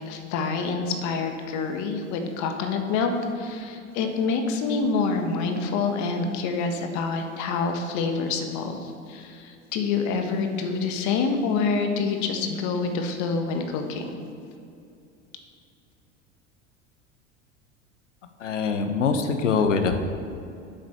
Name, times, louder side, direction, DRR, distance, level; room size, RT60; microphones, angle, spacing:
voice 1, 0.1-14.2, left 4 dB, 50° left, 5 dB, 1.7 m, -27 dB
voice 2, 18.4-20.0, left 5 dB, 80° left, 7 dB, 1.2 m, -23 dB
9.2 x 7.8 x 6.8 m, 2.5 s
hypercardioid pair, 80°, 37 cm